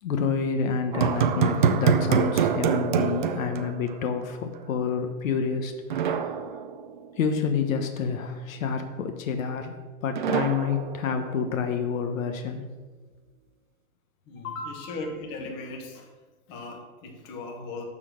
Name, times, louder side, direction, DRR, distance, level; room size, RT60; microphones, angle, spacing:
voice 1, 0.0-6.4 7.2-9.7 10.0-12.6 14.4-15.0, left 6 dB, 65° left, 6 dB, 1.3 m, -28 dB
sound 1, 0.9-4.3 4.5-4.6 5.9-7.3 10.1-11.7, right 7 dB, 35° right, 0.4 m, -25 dB
voice 2, 14.3-16.1 16.5-17.8, left 2 dB, 25° left, 1 dB, 1.5 m, -38 dB
12.5 x 4.2 x 7.6 m, 1.3 s
supercardioid pair, 175°, 44 cm